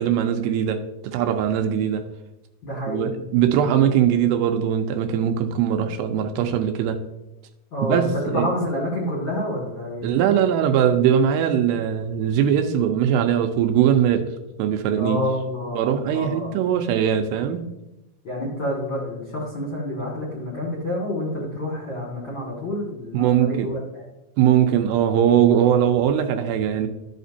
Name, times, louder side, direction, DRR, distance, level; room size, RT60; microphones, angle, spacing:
voice 1, 0.0-2.0 2.9-7.0 7.8-8.5 10.0-14.3 14.6-15.2 15.7-17.6 23.1-23.7 24.4-26.9, right 9 dB, 85° right, 7 dB, 2.7 m, -21 dB
voice 2, 2.6-3.3 7.7-8.1 8.3-10.1 15.0-16.5 18.2-24.1, left 1 dB, 40° left, -5 dB, 1.9 m, -28 dB
13.0 x 5.1 x 2.7 m, 0.94 s
omnidirectional pair, 4.9 m